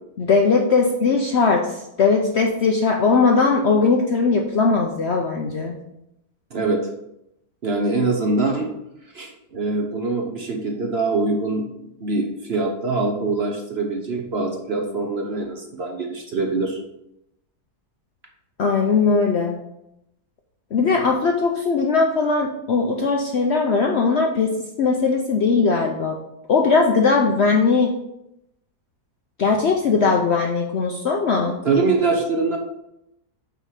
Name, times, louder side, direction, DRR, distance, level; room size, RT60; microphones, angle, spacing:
voice 1, 0.2-5.7 18.6-19.6 20.7-26.2 26.5-27.9 29.4-31.6, left 4 dB, 60° left, 2 dB, 0.7 m, -19 dB
voice 2, 7.6-8.7 9.1-16.8 31.6-32.6, right 3 dB, 50° right, 2 dB, 0.9 m, -23 dB
5.7 x 4.8 x 5.7 m, 0.84 s
omnidirectional pair, 1.7 m